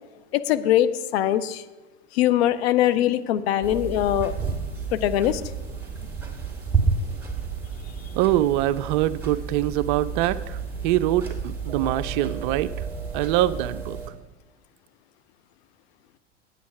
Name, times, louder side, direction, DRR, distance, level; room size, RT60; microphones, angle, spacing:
voice 1, 0.3-1.6 2.1-4.3 4.9-5.4, left 12 dB, 60° left, 12 dB, 0.6 m, -22 dB
sound 1, 3.6-14.1, right 5 dB, 5° right, 2.0 m, -31 dB
voice 2, 8.1-12.7 13.1-14.0, right 14 dB, 45° right, 14 dB, 0.4 m, -24 dB
8.4 x 8.2 x 6.0 m, 1.2 s
figure-of-eight pair, 80°, 36 cm